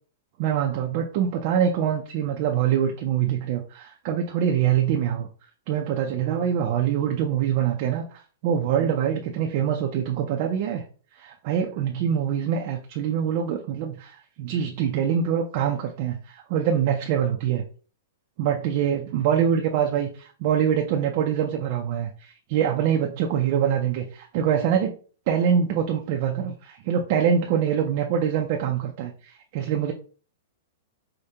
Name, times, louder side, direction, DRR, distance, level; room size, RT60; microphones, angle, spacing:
voice 1, 0.4-5.3 5.7-10.8 11.1-17.6 18.4-24.9 25.3-29.9, right 8 dB, 40° right, 2 dB, 0.4 m, -24 dB
4.9 x 2.1 x 2.8 m, 0.41 s
supercardioid pair, 165°, 0 cm